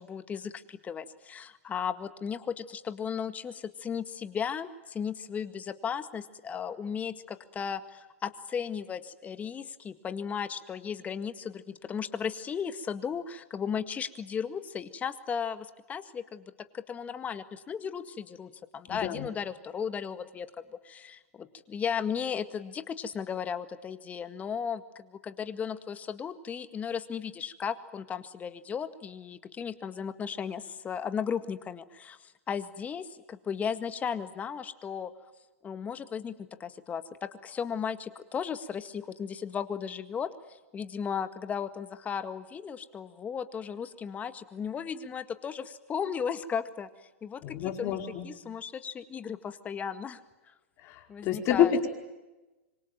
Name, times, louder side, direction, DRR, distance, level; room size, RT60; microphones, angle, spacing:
voice 1, 0.0-20.5 20.8-35.1 35.6-36.3 36.6-46.9 47.2-48.0 48.2-50.2 51.1-51.7, left 7 dB, 20° left, 11 dB, 1.9 m, -35 dB
voice 2, 18.9-19.2 47.4-48.2 50.8-51.9, left 9 dB, 40° left, 4 dB, 4.9 m, -28 dB
26.0 x 24.5 x 9.2 m, 1.1 s
hypercardioid pair, 115°, 7 cm